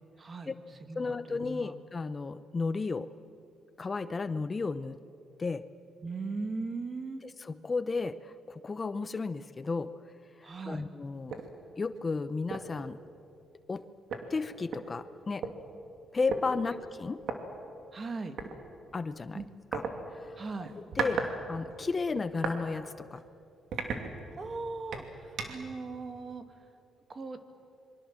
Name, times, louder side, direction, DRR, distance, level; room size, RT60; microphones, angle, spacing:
voice 1, 0.2-0.5 0.8-1.8 6.0-7.2 10.4-10.9 17.9-18.4 19.3-19.5 20.4-20.7 24.4-26.4 27.1-27.5, right 3 dB, 35° right, 8 dB, 2.1 m, -39 dB
voice 2, 0.9-3.1 3.8-5.0 5.4-5.6 7.2-9.9 10.4-11.4 11.8-13.0 13.7-13.8 14.3-15.5 16.1-17.2 18.9-19.4 19.7-19.8 20.1-20.4 21.0-23.2, left 4 dB, 30° left, 13 dB, 0.7 m, -33 dB
sound 1, 11.3-11.5 11.9-12.1 12.5-12.8 13.7-13.8 14.1-15.5 16.3-16.4 17.2-17.4 18.4-18.5 19.7-19.9 20.6-21.3 21.6-22.6 23.1-23.2 23.7-24.5 24.9-25.7, right 5 dB, 65° right, 2.8 m, -35 dB
26.5 x 23.5 x 7.6 m, 2.6 s
cardioid pair, 90°, 0 cm